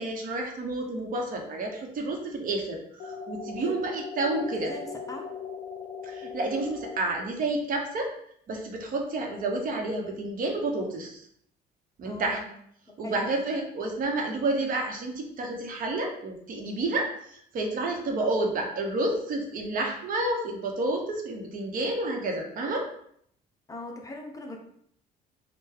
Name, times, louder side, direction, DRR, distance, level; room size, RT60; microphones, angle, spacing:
voice 1, 0.0-4.7 6.0-8.1 8.5-11.3 12.0-12.4 13.0-22.9, right 2 dB, 55° right, 2 dB, 0.9 m, -30 dB
sound 1, 3.0-7.0, left 5 dB, 70° left, 0.5 m, -39 dB
voice 2, 4.5-5.2 12.0-12.6 13.0-13.4 23.7-24.6, left 2 dB, 20° left, 2 dB, 0.7 m, -40 dB
3.7 x 2.2 x 4.4 m, 0.68 s
cardioid pair, 110°, 17 cm